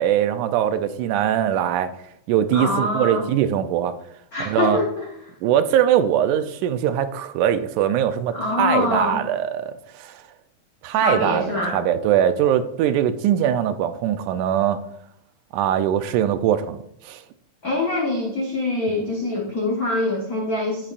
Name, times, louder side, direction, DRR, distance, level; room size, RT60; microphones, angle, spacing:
voice 1, 0.0-1.9 2.3-3.9 4.4-4.8 5.4-10.2 10.8-14.8 15.5-17.2, right 10 dB, 85° right, 2.1 m, -21 dB
voice 2, 2.5-3.2 4.3-5.1 8.3-9.2 11.0-11.8 17.6-20.9, left 2 dB, 80° left, 0.8 m, -24 dB
15.5 x 6.0 x 2.5 m
omnidirectional pair, 3.5 m